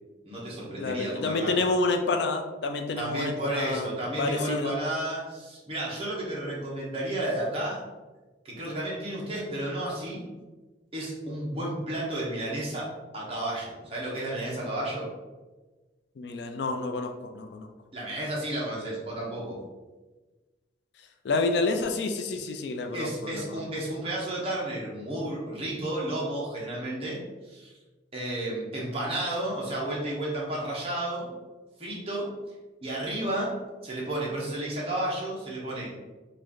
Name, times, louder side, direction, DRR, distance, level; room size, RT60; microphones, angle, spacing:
voice 1, 0.2-1.6 3.0-7.8 8.4-10.2 10.9-15.1 17.9-19.6 22.9-27.7 28.1-31.3 31.8-32.3 32.8-33.5 33.8-35.9, right 1 dB, 30° right, -5 dB, 1.0 m, -32 dB
voice 2, 0.8-3.9 4.2-4.7 16.2-17.7 21.2-23.6, left 3 dB, 65° left, 5 dB, 0.3 m, -29 dB
3.1 x 2.5 x 3.8 m, 1.2 s
head